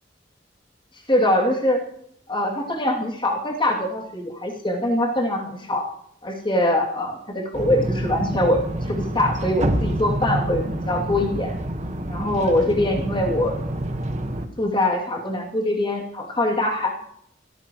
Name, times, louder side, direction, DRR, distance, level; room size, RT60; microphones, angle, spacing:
voice 1, 1.1-1.8 2.3-5.8 6.2-11.5 12.1-13.6 14.6-16.9, left 1 dB, 30° left, 0 dB, 2.8 m, -23 dB
sound 1, 7.5-14.5, right 1 dB, 40° right, 1.4 m, -27 dB
26.5 x 14.0 x 3.1 m, 0.70 s
head